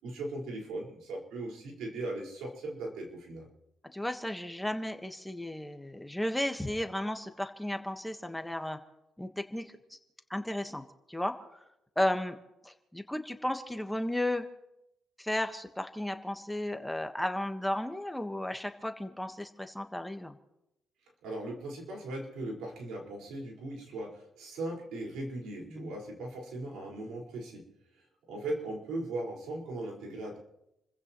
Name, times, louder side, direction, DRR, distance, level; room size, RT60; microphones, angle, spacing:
voice 1, 0.0-3.5 21.2-27.7 27.9-30.4, right 2 dB, 85° right, -2 dB, 5.0 m, -38 dB
voice 2, 3.8-8.8 9.2-10.0 10.3-11.6 12.0-12.4 12.6-14.5 15.2-20.4 25.7-25.9, left 1 dB, 5° left, 6 dB, 1.4 m, -34 dB
29.0 x 15.0 x 3.1 m, 0.86 s
cardioid pair, 90°, 0 cm